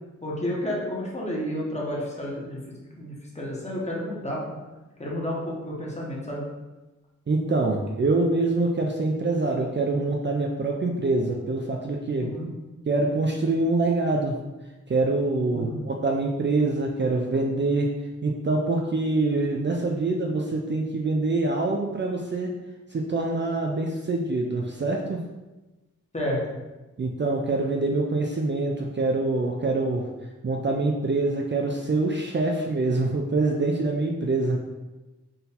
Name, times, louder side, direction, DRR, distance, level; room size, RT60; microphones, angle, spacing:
voice 1, 0.2-2.6 2.9-4.4 5.0-6.4 12.2-12.5 15.5-15.8 26.1-26.4, equal, 20° left, -5 dB, 1.3 m, -31 dB
voice 2, 7.3-12.3 12.9-14.4 14.9-17.9 18.2-22.5 22.9-25.2 27.0-30.1 30.4-34.6, right 2 dB, 40° right, 1 dB, 0.4 m, -25 dB
3.9 x 2.6 x 4.2 m, 1.1 s
wide cardioid pair, 75°, 30 cm